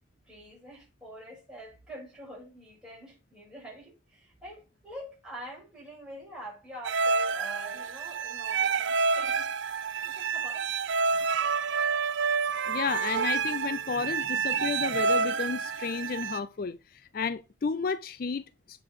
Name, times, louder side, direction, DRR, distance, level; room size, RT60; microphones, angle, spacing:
voice 1, 0.3-9.5 10.0-10.7 14.1-14.3, right 1 dB, 5° right, 6.5 m, -45 dB
sound 1, 6.8-16.4, right 5 dB, 65° right, 0.5 m, -28 dB
voice 2, 12.7-18.8, left 5 dB, 45° left, 0.4 m, -32 dB
8.8 x 6.1 x 4.7 m
head